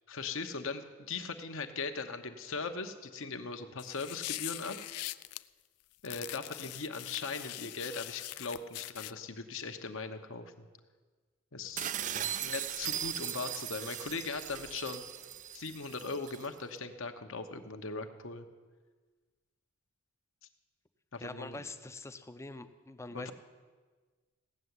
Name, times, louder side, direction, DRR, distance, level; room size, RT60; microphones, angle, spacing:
voice 1, 0.1-4.8 6.0-10.7 11.5-11.9 12.2-15.1 15.5-18.5 21.1-21.6 23.1-23.3, left 4 dB, 60° left, 7 dB, 1.0 m, -39 dB
sound 1, 3.8-5.4 6.0-9.1, left 17 dB, 85° left, 0.4 m, -42 dB
sound 2, 11.8-16.5, right 10 dB, 35° right, 0.3 m, -38 dB
voice 2, 21.2-23.3, left 2 dB, 15° left, 10 dB, 0.6 m, -45 dB
16.5 x 6.9 x 9.6 m, 1.4 s
head